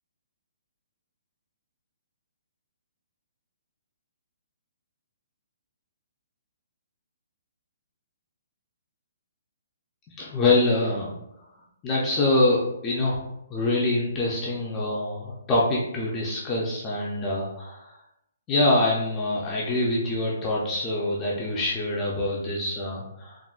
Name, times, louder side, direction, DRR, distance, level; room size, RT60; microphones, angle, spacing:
voice 1, 10.2-11.1 11.8-13.2 13.5-17.9 18.5-23.4, left 2 dB, 15° left, -5 dB, 0.3 m, -25 dB
3.6 x 2.1 x 2.3 m, 0.81 s
hypercardioid pair, 170°, 0 cm